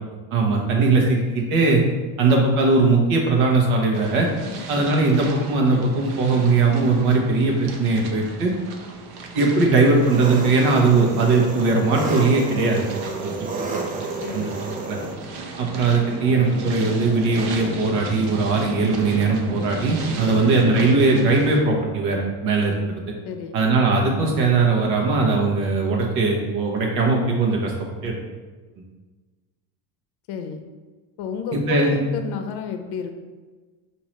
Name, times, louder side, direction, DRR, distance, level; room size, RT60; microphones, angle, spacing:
voice 1, 0.3-1.8 2.2-4.3 4.7-8.5 9.3-12.8 13.2-13.3 13.7-13.8 14.3-14.5 14.9-15.0 15.6-23.0 23.5-27.7 28.0-28.1 31.5-32.0, right 3 dB, 75° right, 0 dB, 1.3 m, -19 dB
sound 1, 3.9-21.6, right 3 dB, 55° right, 0.8 m, -35 dB
Engine, 9.9-15.1, right 3 dB, 20° right, 0.3 m, -31 dB
voice 2, 14.2-14.5 20.2-20.5 23.3-23.6 30.3-30.6 31.2-33.1, left 6 dB, 55° left, 7 dB, 0.6 m, -31 dB
5.4 x 2.9 x 3.1 m, 1.3 s
supercardioid pair, 120°, 46 cm